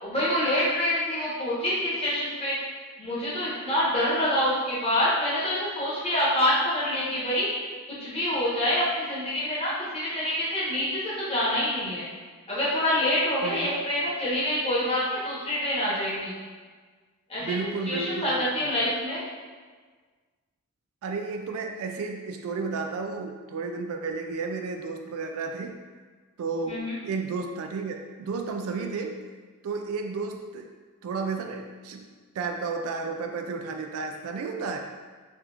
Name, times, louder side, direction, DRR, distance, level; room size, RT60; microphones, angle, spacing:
voice 1, 0.0-2.5 3.0-7.5 8.0-12.0 12.5-16.3 17.3-19.2 26.7-26.9, left 1 dB, 25° left, -9 dB, 1.0 m, -26 dB
voice 2, 13.4-13.8 17.4-18.7 21.0-25.8 26.4-29.2 29.6-30.7 31.0-32.1 32.4-34.8, right 4 dB, 70° right, 4 dB, 0.3 m, -32 dB
3.3 x 2.9 x 2.4 m, 1.5 s
head